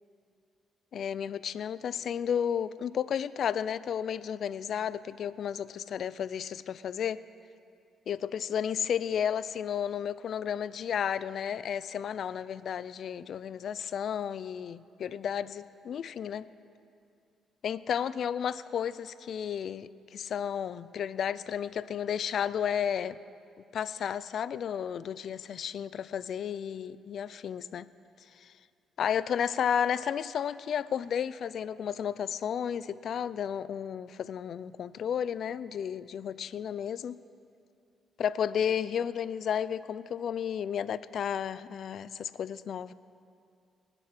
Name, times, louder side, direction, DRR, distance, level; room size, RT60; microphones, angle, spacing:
voice 1, 0.9-7.2 8.1-16.5 17.6-23.2 23.7-27.9 28.4-28.5 29.0-37.2 38.2-42.9, left 8 dB, 65° left, 17 dB, 0.4 m, -32 dB
20.0 x 7.8 x 5.8 m, 2.4 s
cardioid pair, 90°, 0 cm